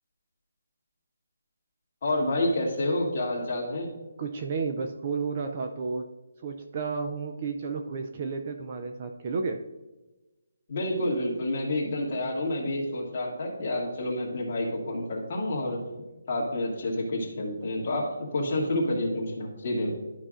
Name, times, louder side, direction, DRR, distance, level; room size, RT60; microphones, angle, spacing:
voice 1, 2.0-3.9 10.7-15.8 16.3-19.9, left 1 dB, 30° left, -4 dB, 1.9 m, -29 dB
voice 2, 4.2-6.1 6.4-9.6, right 4 dB, 25° right, 5 dB, 0.4 m, -32 dB
12.5 x 5.6 x 2.5 m, 1.1 s
hypercardioid pair, 175°, 0 cm